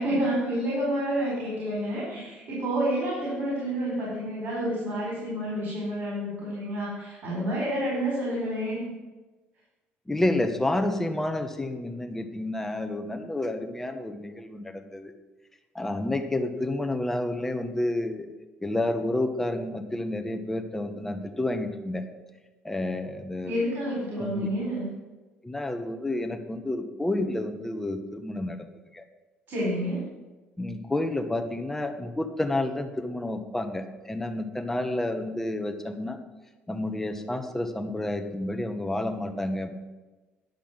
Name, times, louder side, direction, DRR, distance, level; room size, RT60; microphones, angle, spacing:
voice 1, 0.0-8.9 23.4-24.9 29.5-30.0, equal, 60° right, -5 dB, 4.4 m, -29 dB
voice 2, 10.1-15.1 15.7-18.3 18.6-22.0 22.6-23.6 24.2-24.5 25.4-28.6 28.9-29.0 30.6-36.2 36.7-39.7, left 1 dB, 10° left, 6 dB, 1.2 m, -30 dB
10.5 x 5.9 x 7.3 m, 1.2 s
cardioid pair, 115°, 4 cm